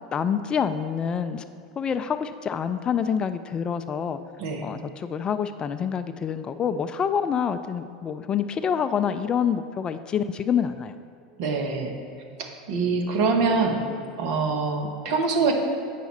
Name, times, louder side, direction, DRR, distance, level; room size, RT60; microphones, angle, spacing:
voice 1, 0.1-1.4 1.8-4.2 4.6-10.9, left 7 dB, 30° left, 10 dB, 0.3 m, -27 dB
voice 2, 11.4-11.9 12.7-13.8 14.2-15.5, right 4 dB, 60° right, 3 dB, 1.1 m, -24 dB
8.3 x 5.7 x 4.2 m, 2.6 s
hypercardioid pair, 85°, 3 cm